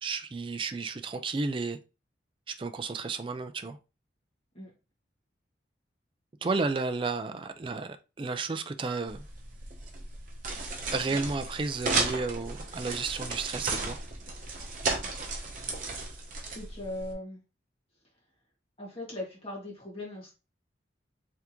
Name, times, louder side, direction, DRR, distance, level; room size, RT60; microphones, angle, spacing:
voice 1, 0.0-1.8 2.5-3.8 6.4-9.3 10.9-14.0, right 4 dB, 25° right, 0.3 m, -32 dB
sound 1, 9.1-17.1, right 3 dB, 45° right, 0.8 m, -34 dB
voice 2, 16.5-17.4 18.8-20.3, left 1 dB, 30° left, 1.9 m, -39 dB
3.5 x 3.5 x 2.9 m
head